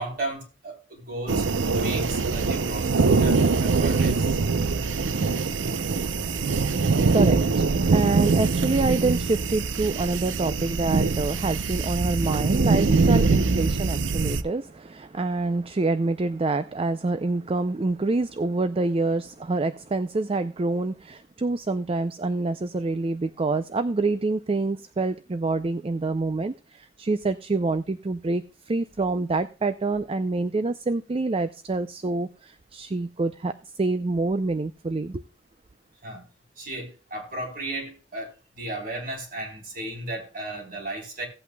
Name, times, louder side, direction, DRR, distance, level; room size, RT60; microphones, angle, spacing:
voice 1, 0.0-4.4 36.0-36.2 36.6-41.3, right 1 dB, 50° right, 3.8 m, -35 dB
sound 1, 1.3-14.4, right 4 dB, 90° right, 0.6 m, -23 dB
voice 2, 6.0-35.2, right 3 dB, 30° right, 0.4 m, -27 dB
17.0 x 8.4 x 2.2 m
head